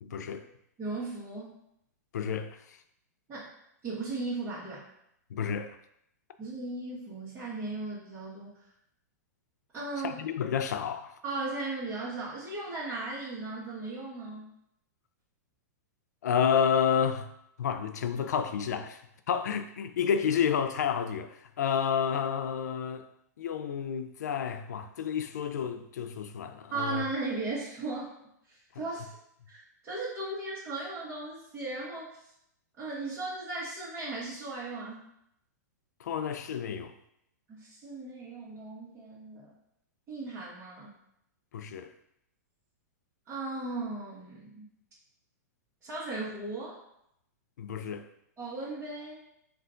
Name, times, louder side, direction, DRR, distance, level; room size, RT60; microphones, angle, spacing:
voice 1, 0.0-0.4 2.1-2.6 5.3-5.7 10.0-11.1 16.2-17.3 17.6-19.0 19.3-23.1 23.4-27.0 36.0-36.9 41.5-41.9 47.6-48.0, left 7 dB, 75° left, 0.4 m, -30 dB
voice 2, 0.8-1.6 3.3-3.5 3.8-4.9 6.4-8.6 9.7-10.2 11.2-14.5 26.7-28.1 28.5-29.2 29.5-32.1 32.8-35.0 37.5-39.5 40.1-40.9 43.3-44.7 45.8-46.8 48.4-49.2, right 3 dB, 25° right, 1.4 m, -37 dB
4.4 x 2.4 x 3.8 m
hypercardioid pair, 120°, 9 cm